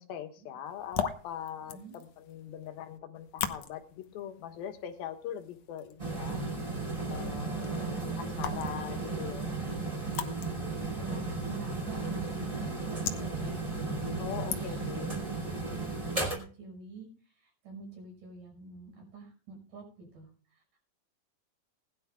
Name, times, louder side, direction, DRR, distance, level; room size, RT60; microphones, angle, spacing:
voice 1, 0.0-6.4 7.1-9.5 14.2-15.2, left 9 dB, 90° left, 6 dB, 3.2 m, -42 dB
sound 1, 0.7-15.1, left 9 dB, 65° left, 1.7 m, -42 dB
sound 2, 6.0-16.4, right 3 dB, 10° right, 3.9 m, -35 dB
voice 2, 6.2-6.7 7.9-8.5 8.8-8.9 10.8-13.9 14.5-14.9 16.0-20.6, right 3 dB, 65° right, 2 dB, 7.4 m, -48 dB
20.5 x 11.0 x 2.3 m, 0.40 s
omnidirectional pair, 4.1 m